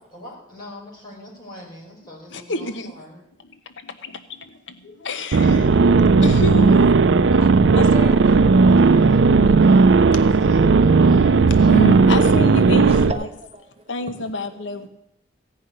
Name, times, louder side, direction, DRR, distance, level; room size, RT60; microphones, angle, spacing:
voice 1, 0.1-3.2 6.5-6.9 7.3-9.3 9.6-12.2, left 1 dB, 25° left, -4 dB, 5.1 m, -41 dB
voice 2, 2.3-2.9 3.4-6.8 7.4-7.5 7.7-8.2 9.4-9.5 11.1-13.3 13.9-14.9, left 2 dB, 85° left, 9 dB, 0.9 m, -28 dB
sound 1, 5.3-13.1, right 4 dB, 75° right, 0.5 m, -15 dB
voice 3, 12.8-14.4 14.8-14.9, right 2 dB, 35° right, 5 dB, 1.1 m, -36 dB
16.0 x 5.7 x 9.6 m, 0.86 s
head